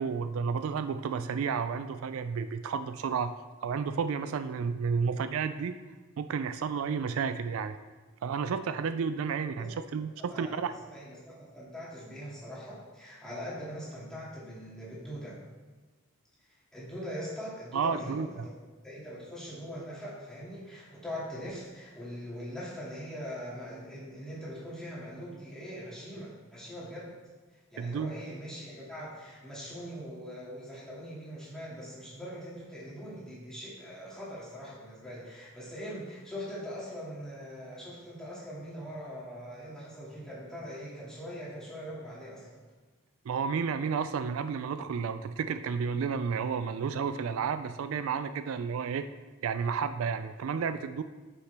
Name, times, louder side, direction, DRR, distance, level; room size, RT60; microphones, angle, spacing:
voice 1, 0.0-3.3 3.6-5.8 6.2-7.8 8.2-10.7 17.7-18.5 27.8-28.1 43.3-49.0 49.4-51.0, right 6 dB, 75° right, 11 dB, 0.3 m, -31 dB
voice 2, 10.3-15.4 16.5-18.5 18.8-27.1 27.7-42.6, equal, 5° left, -8 dB, 2.3 m, -42 dB
9.7 x 5.7 x 3.4 m, 1.3 s
head